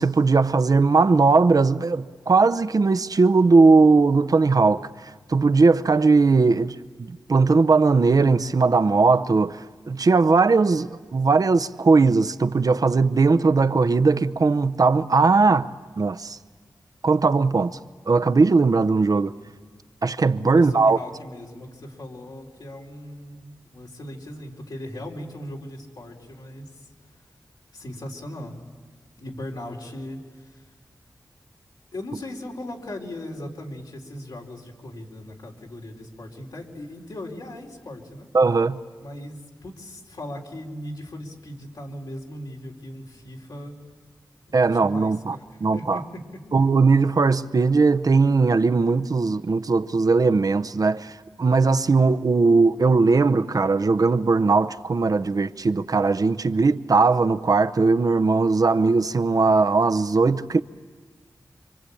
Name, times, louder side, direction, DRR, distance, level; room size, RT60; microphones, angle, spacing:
voice 1, 0.0-15.7 16.0-16.4 17.0-17.8 18.1-19.3 20.0-21.0 38.3-38.8 44.5-45.4 45.6-46.0 46.5-60.6, right 4 dB, 60° right, 0.7 m, -19 dB
voice 2, 20.4-26.9 27.7-28.6 29.2-30.7 31.9-38.3 39.0-43.8 44.5-46.4, left 1 dB, 80° left, 3.9 m, -38 dB
27.0 x 25.0 x 8.5 m
wide cardioid pair, 60°, 7 cm